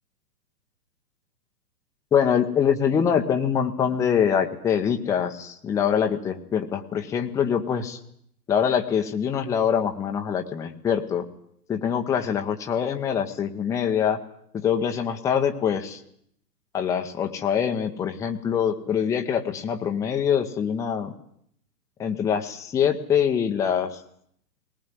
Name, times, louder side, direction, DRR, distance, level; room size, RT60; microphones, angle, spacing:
voice 1, 2.1-8.0 8.5-11.2 11.7-14.2 14.5-16.0 16.7-21.1 22.0-24.0, left 8 dB, 5° left, 5 dB, 0.8 m, -24 dB
20.5 x 19.0 x 9.4 m, 0.69 s
figure-of-eight pair, 120°, 48 cm